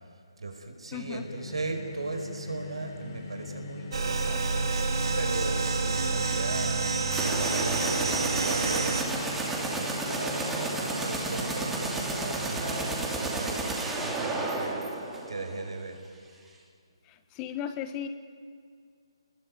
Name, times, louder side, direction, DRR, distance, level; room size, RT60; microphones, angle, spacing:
voice 1, 0.4-6.8 7.2-9.0 9.6-14.8 15.3-16.0, right 2 dB, 85° right, 5 dB, 5.0 m, -37 dB
sound 1, 0.9-13.5, left 3 dB, 40° left, 4.3 m, -41 dB
voice 2, 0.9-1.3 17.1-18.1, left 9 dB, 20° left, 10 dB, 1.2 m, -37 dB
sound 2, 3.9-9.0, right 4 dB, 60° right, 3.0 m, -28 dB
sound 3, 7.1-15.7, right 2 dB, 5° right, 2.7 m, -32 dB
28.5 x 20.5 x 9.7 m, 2.2 s
figure-of-eight pair, 155°, 3 cm